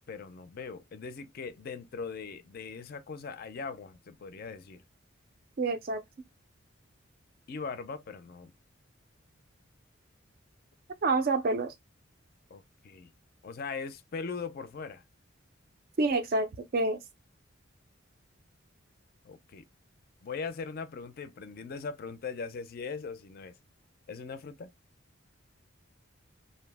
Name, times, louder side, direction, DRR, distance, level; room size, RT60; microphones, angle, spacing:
voice 1, 0.1-4.8 7.5-8.5 12.5-13.1 13.4-15.0 19.2-19.6 20.2-23.6 24.1-24.7, left 5 dB, 45° left, 0.4 m, -40 dB
voice 2, 5.6-6.0 11.0-11.7 16.0-17.0, right 3 dB, 45° right, 0.4 m, -27 dB
2.7 x 2.0 x 3.2 m
head